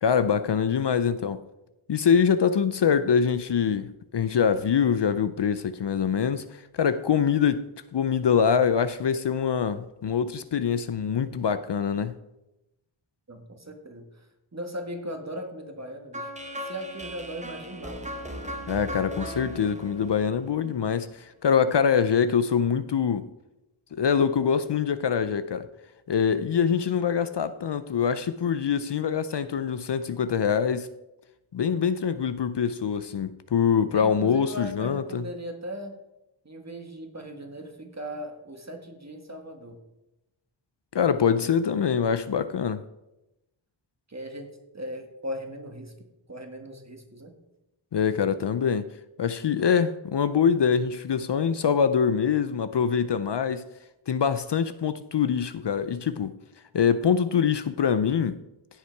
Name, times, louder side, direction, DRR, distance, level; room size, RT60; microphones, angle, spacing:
voice 1, 0.0-1.4 1.9-7.6 7.9-12.2 18.7-23.3 23.9-25.7 26.1-30.9 31.5-35.3 40.9-42.8 47.9-48.9 49.2-53.6 54.1-56.4 56.7-58.4, left 7 dB, 60° left, 0.5 m, -24 dB
voice 2, 13.3-14.0 14.5-18.1 33.9-35.9 36.4-39.8 44.1-45.9 46.3-47.3, equal, 35° right, 1.7 m, -38 dB
sound 1, 16.1-21.1, equal, 15° right, 1.1 m, -38 dB
16.0 x 5.7 x 4.6 m
wide cardioid pair, 75°, 49 cm